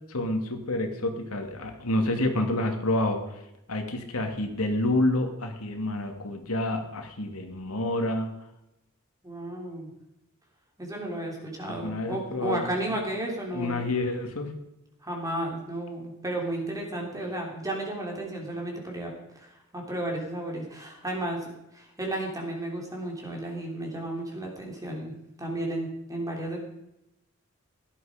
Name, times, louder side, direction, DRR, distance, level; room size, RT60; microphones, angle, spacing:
voice 1, 0.1-3.4 3.7-8.3 11.8-12.6 12.9-13.0 13.5-14.5, left 1 dB, 85° left, 4 dB, 2.5 m, -28 dB
voice 2, 9.2-9.9 10.8-13.9 15.0-25.1 25.4-26.6, right 1 dB, 15° right, 0 dB, 3.7 m, -33 dB
17.0 x 11.5 x 5.1 m, 0.86 s
head